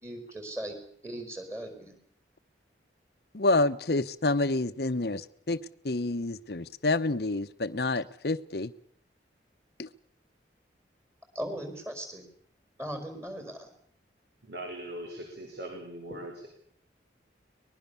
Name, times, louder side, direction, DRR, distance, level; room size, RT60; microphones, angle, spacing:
voice 1, 0.0-0.8 1.0-1.9 11.3-12.3 12.8-13.7, right 1 dB, 15° right, 5.1 m, -38 dB
voice 2, 3.3-5.6 5.8-8.7 9.8-9.9, left 2 dB, 60° left, 0.9 m, -28 dB
voice 3, 14.4-16.5, right 1 dB, 70° right, 4.7 m, -40 dB
24.0 x 20.5 x 7.1 m
head